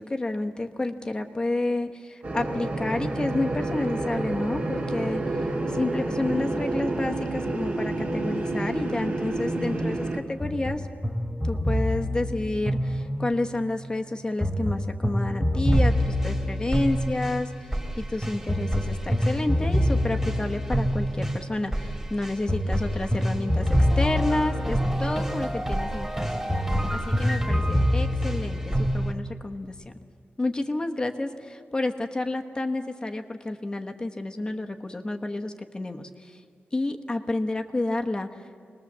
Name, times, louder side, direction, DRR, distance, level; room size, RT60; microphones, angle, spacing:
voice 1, 0.0-5.5 5.7-10.9 11.4-17.5 18.0-26.2 26.9-29.7 30.4-36.4 36.7-38.3, left 2 dB, 20° left, 5 dB, 1.0 m, -30 dB
sound 1, 2.2-10.2, right 2 dB, 35° right, 1.9 m, -29 dB
sound 2, 10.4-13.5 14.4-29.1, equal, 10° right, 2.1 m, -25 dB
26.0 x 20.0 x 7.3 m, 2.2 s
wide cardioid pair, 175°, 4 cm